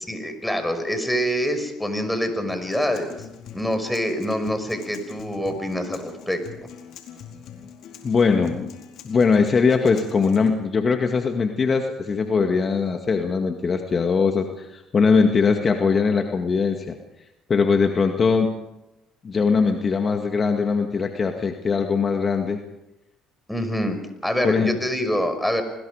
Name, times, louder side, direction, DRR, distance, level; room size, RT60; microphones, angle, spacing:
voice 1, 0.1-3.2 3.5-6.4 23.5-25.6, equal, 5° left, 7 dB, 5.8 m, -25 dB
Acoustic guitar, 2.5-10.5, left 8 dB, 65° left, 4.4 m, -43 dB
voice 2, 8.0-8.7 9.0-17.0 17.5-18.6 19.2-22.6 24.4-24.8, left 5 dB, 40° left, 4 dB, 2.1 m, -21 dB
29.5 x 21.0 x 5.1 m, 0.92 s
hypercardioid pair, 65°, 0 cm